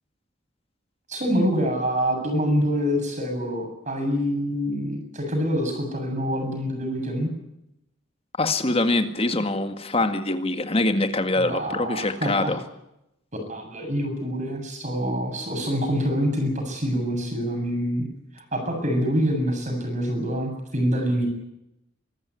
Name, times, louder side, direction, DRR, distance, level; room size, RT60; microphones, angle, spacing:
voice 1, 1.1-7.3 11.4-12.5 13.5-18.1 18.3-21.3, equal, 40° right, 4 dB, 7.5 m, -26 dB
voice 2, 8.4-12.6, left 2 dB, 30° left, 8 dB, 1.9 m, -24 dB
24.5 x 14.0 x 9.8 m, 0.85 s
head